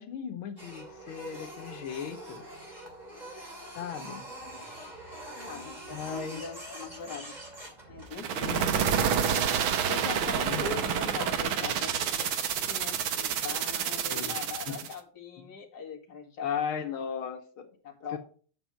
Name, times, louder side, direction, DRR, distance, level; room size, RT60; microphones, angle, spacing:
voice 1, 0.0-2.4 3.7-4.3 5.9-6.4 8.3-9.1 10.3-10.9 14.1-14.8 16.4-17.8 18.1-18.2, left 7 dB, 85° left, 5 dB, 1.8 m, -37 dB
Printer, 0.6-8.4, right 1 dB, 20° right, 2.7 m, -44 dB
voice 2, 5.4-7.4 7.9-8.8 9.6-16.8 17.8-18.2, left 5 dB, 55° left, 2 dB, 2.1 m, -41 dB
sound 1, 8.1-14.9, right 8 dB, 80° right, 1.7 m, -28 dB
7.8 x 6.3 x 5.7 m, 0.42 s
omnidirectional pair, 2.2 m